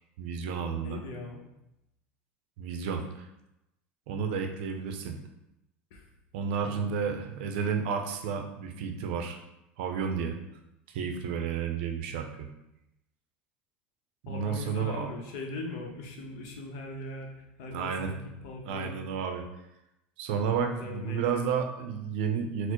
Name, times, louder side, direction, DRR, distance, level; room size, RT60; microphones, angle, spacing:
voice 1, 0.2-1.0 2.6-3.3 4.1-5.2 6.3-9.4 9.8-10.4 10.9-12.5 14.2-15.1 17.7-18.1 18.6-19.5 20.2-22.7, right 6 dB, 75° right, 4 dB, 0.5 m, -31 dB
voice 2, 0.8-1.4 5.9-6.1 6.6-6.9 14.3-18.2 18.4-19.0 20.3-21.4, left 2 dB, 65° left, 2 dB, 0.8 m, -40 dB
4.3 x 2.0 x 3.0 m, 0.88 s
hypercardioid pair, 95°, 6 cm